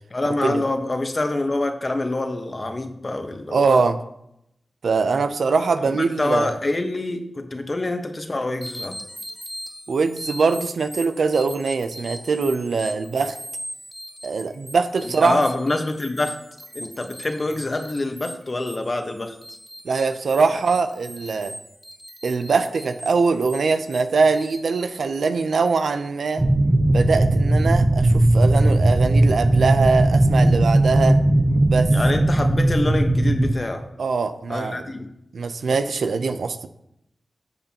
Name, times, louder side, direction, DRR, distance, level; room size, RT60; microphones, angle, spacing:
voice 1, 0.1-3.8 6.0-9.0 15.0-16.4 16.7-19.4 20.5-20.6 31.9-33.9 34.5-35.1, left 2 dB, 40° left, 5 dB, 1.2 m, -26 dB
voice 2, 3.5-4.0 4.8-6.5 9.9-13.4 14.2-15.4 19.8-21.6 22.2-26.4 26.9-31.2 31.7-31.9 34.0-34.9 35.3-36.7, right 4 dB, 85° right, 9 dB, 0.6 m, -22 dB
sound 1, 8.6-24.6, equal, 10° right, 1.5 m, -40 dB
sound 2, 26.4-33.5, right 1 dB, 30° right, 0.7 m, -18 dB
13.0 x 6.9 x 2.9 m, 0.80 s
cardioid pair, 50°, 0 cm